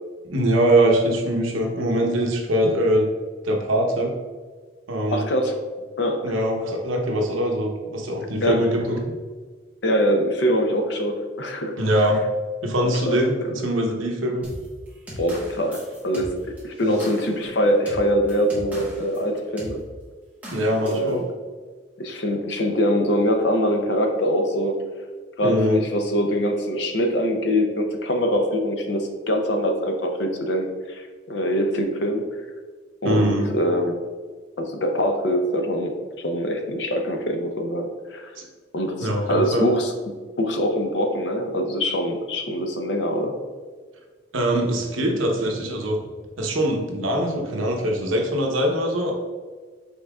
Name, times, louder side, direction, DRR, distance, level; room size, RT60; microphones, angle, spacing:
voice 1, 0.2-3.1 3.4-4.1 4.9-5.2 6.2-9.1 11.8-12.2 12.6-14.4 16.8-17.0 20.5-21.2 25.4-25.8 33.0-33.5 38.3-38.4 39.0-39.7 44.3-46.0 46.4-49.1, right 1 dB, 85° right, 1 dB, 0.9 m, -22 dB
voice 2, 5.1-5.5 6.0-6.3 8.4-8.6 9.8-11.8 12.9-13.2 15.2-19.8 20.8-21.3 22.0-24.8 25.4-32.2 33.0-33.9 34.6-38.3 38.7-39.9 40.4-43.3, equal, 60° left, 4 dB, 0.6 m, -23 dB
sound 1, 14.4-19.2 19.6-19.8 20.4-21.1, equal, 10° right, 1.1 m, -38 dB
5.4 x 3.9 x 2.3 m, 1.5 s
head